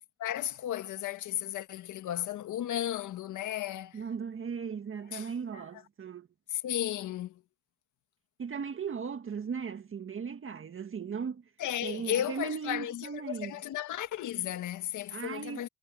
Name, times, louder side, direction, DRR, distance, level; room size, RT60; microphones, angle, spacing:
voice 1, 0.2-4.0 5.1-5.6 6.5-7.4 11.6-15.7, left 12 dB, 80° left, 1.7 m, -34 dB
voice 2, 3.9-6.3 8.4-11.4 11.8-13.6 15.1-15.7, right 6 dB, 45° right, 1.8 m, -37 dB
cardioid pair, 90°, 30 cm